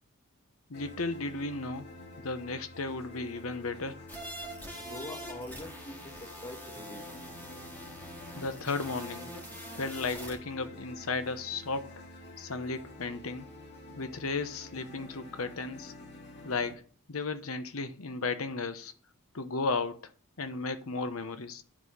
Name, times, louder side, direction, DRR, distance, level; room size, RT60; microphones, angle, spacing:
voice 1, 0.7-1.9 2.2-4.0 8.3-9.3 9.7-11.9 12.4-13.5 14.0-15.9 16.4-16.8 17.1-18.9 19.3-20.1 20.4-21.6, left 3 dB, 70° left, 0.9 m, -34 dB
sound 1, 0.7-16.7, left 1 dB, 55° left, 2.0 m, -49 dB
sound 2, 4.1-10.4, equal, 10° left, 2.1 m, -44 dB
voice 2, 4.8-7.0, left 1 dB, 25° left, 1.3 m, -44 dB
10.0 x 4.2 x 5.3 m
head